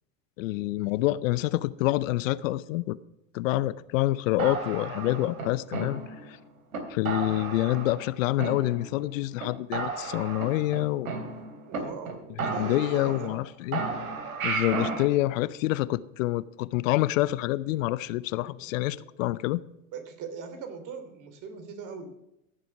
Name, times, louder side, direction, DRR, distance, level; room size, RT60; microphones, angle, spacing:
voice 1, 0.4-3.0 3.3-6.0 6.9-11.1 12.4-13.8 14.4-19.6, left 17 dB, 70° left, 0.7 m, -27 dB
sound 1, 4.4-6.3 6.7-6.8 7.0-8.1 8.4-9.1 9.4-9.5 9.7-11.8 12.0-12.1 12.4-13.4 13.7-15.1, right 4 dB, 80° right, 3.0 m, -33 dB
voice 2, 11.7-13.4 18.6-19.1 19.9-22.1, right 5 dB, 45° right, 3.2 m, -41 dB
16.0 x 7.8 x 5.8 m
hypercardioid pair, 95°, 41 cm